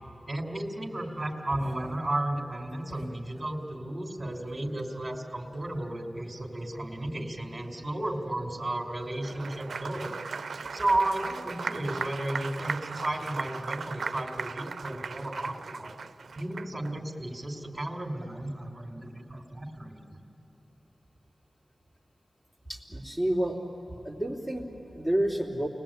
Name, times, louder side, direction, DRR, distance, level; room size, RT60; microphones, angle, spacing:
voice 1, 0.3-10.2 10.7-15.9 16.4-20.2, right 1 dB, 25° right, -1 dB, 2.8 m, -33 dB
voice 2, 1.5-1.9 2.9-3.1 22.7-23.6 23.9-25.7, right 1 dB, 15° left, 1 dB, 3.4 m, -30 dB
Applause, 9.1-16.9, right 5 dB, 80° right, 0.5 m, -37 dB
29.5 x 20.0 x 8.8 m, 2.9 s
wide cardioid pair, 65°, 0 cm